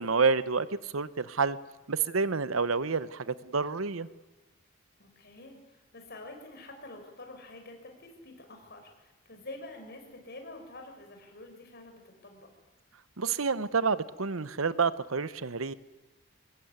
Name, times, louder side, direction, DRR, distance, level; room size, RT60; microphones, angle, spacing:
voice 1, 0.0-1.6 1.9-4.1 13.2-15.7, right 4 dB, 90° right, 16 dB, 0.9 m, -28 dB
voice 2, 5.0-12.5, left 2 dB, 50° left, 4 dB, 5.7 m, -47 dB
23.0 x 19.5 x 9.6 m, 1.2 s
head